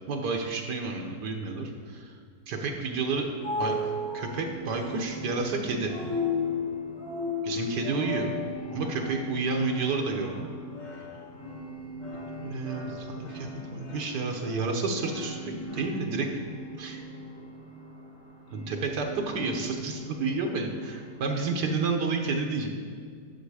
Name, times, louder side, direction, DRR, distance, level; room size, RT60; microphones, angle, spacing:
voice 1, 0.1-2.2 2.5-3.3 3.6-3.8 4.1-5.9 7.4-8.3 8.7-10.5 12.4-16.3 16.8-17.0 18.5-22.7, right 4 dB, 75° right, 3 dB, 1.5 m, -30 dB
sound 1, 3.0-15.8, left 4 dB, 50° left, 1.8 m, -36 dB
sound 2, 3.4-21.3, right 2 dB, 80° left, 3.0 m, -43 dB
10.5 x 7.2 x 4.9 m, 2.1 s
omnidirectional pair, 1.8 m